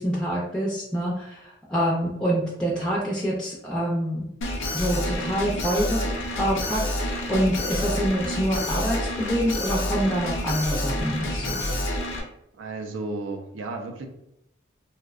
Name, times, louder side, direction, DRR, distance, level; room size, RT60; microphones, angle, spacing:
voice 1, 0.0-4.3 4.7-6.0 6.4-11.7, equal, 5° left, -5 dB, 0.3 m, -26 dB
Alarm, 4.4-12.2, left 1 dB, 85° left, 0.5 m, -28 dB
voice 2, 12.6-14.1, right 3 dB, 85° right, 4 dB, 0.4 m, -33 dB
2.6 x 2.1 x 2.3 m, 0.81 s
head